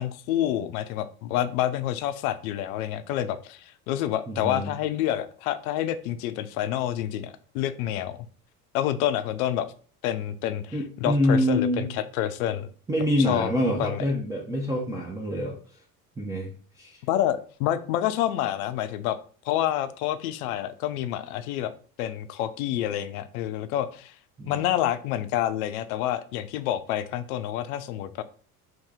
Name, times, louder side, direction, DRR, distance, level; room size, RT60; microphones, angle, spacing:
voice 1, 0.0-8.2 8.7-9.7 10.0-12.7 13.3-13.5 13.8-14.0 17.1-19.2 19.4-21.7 22.0-24.1 24.5-28.2, left 12 dB, 70° left, 12 dB, 0.5 m, -28 dB
voice 2, 4.3-4.7 10.7-11.9 12.9-15.6 16.2-16.5 16.8-17.0 24.4-24.6, left 1 dB, 10° right, -4 dB, 0.5 m, -26 dB
2.7 x 2.6 x 3.6 m, 0.42 s
hypercardioid pair, 75°, 46 cm